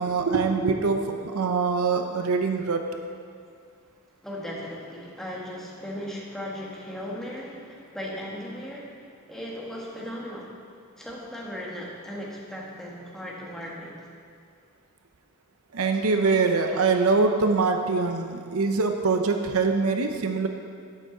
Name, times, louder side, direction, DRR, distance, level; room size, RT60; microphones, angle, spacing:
voice 1, 0.0-2.8 15.7-20.5, right 4 dB, 70° right, 5 dB, 0.7 m, -23 dB
voice 2, 4.2-10.5 11.0-14.0, equal, ahead, -4 dB, 1.5 m, -37 dB
11.0 x 8.9 x 3.9 m, 2.3 s
head